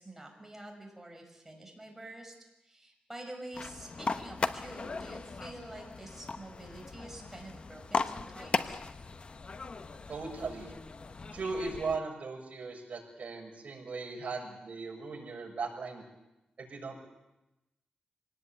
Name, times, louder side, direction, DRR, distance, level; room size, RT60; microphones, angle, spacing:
voice 1, 0.0-2.3 2.6-8.8, right 1 dB, 10° right, 2 dB, 5.9 m, -47 dB
sound 1, 3.5-12.0, left 4 dB, 40° left, 0.9 m, -38 dB
voice 2, 10.1-10.7 11.3-16.0 16.6-17.1, right 4 dB, 55° right, 0 dB, 6.9 m, -38 dB
25.5 x 18.5 x 9.0 m, 0.96 s
wide cardioid pair, 125°, 3 cm